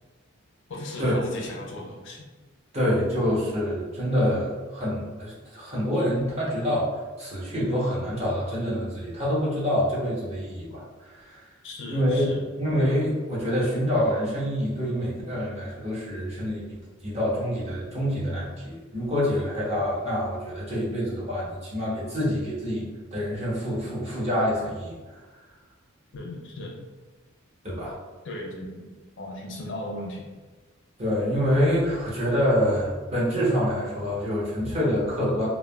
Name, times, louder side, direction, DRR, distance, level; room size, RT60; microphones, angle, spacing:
voice 1, 0.7-2.2 11.6-12.4 26.1-26.8 28.2-28.9 29.2-30.2, left 1 dB, 60° left, -1 dB, 0.5 m, -36 dB
voice 2, 2.7-6.9 7.2-10.8 11.1-11.4 11.9-12.3 12.6-16.6 17.0-22.8 23.1-25.0 27.6-28.0 31.0-35.5, equal, 30° right, -7 dB, 0.9 m, -26 dB
3.3 x 2.2 x 2.2 m, 1.3 s
head